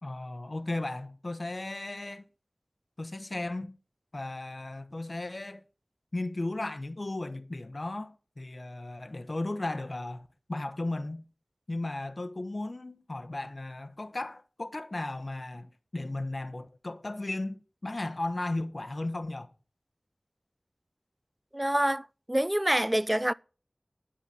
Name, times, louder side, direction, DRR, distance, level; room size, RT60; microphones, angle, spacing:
voice 1, 0.0-2.2 3.0-3.8 4.1-5.6 6.1-11.2 11.7-19.5, left 2 dB, 55° left, 0.9 m, -35 dB
voice 2, 21.5-23.3, right 1 dB, 20° right, 0.5 m, -26 dB
9.9 x 8.3 x 7.0 m
wide cardioid pair, 50°, 0 cm